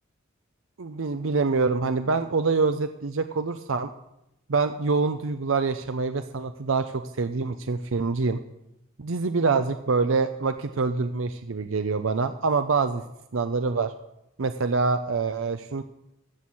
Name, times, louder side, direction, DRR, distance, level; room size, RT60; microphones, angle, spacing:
voice 1, 0.8-3.9 4.5-8.4 9.0-13.0 13.3-13.9 14.4-15.8, right 4 dB, 80° right, 9 dB, 0.6 m, -25 dB
15.0 x 6.2 x 8.4 m, 0.86 s
head